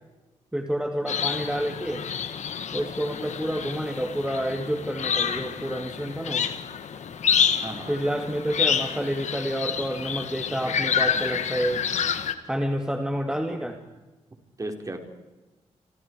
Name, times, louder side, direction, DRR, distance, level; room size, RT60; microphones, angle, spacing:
voice 1, 0.5-2.0 2.7-6.4 7.9-11.8 12.5-13.8, equal, 5° right, 4 dB, 2.5 m, -29 dB
sound 1, 1.1-12.3, left 7 dB, 70° left, 1.9 m, -28 dB
voice 2, 7.6-8.0 11.0-11.1 13.3-13.6 14.6-15.0, right 2 dB, 30° right, 4 dB, 4.6 m, -36 dB
29.0 x 25.5 x 4.9 m, 1.1 s
cardioid pair, 70°, 12 cm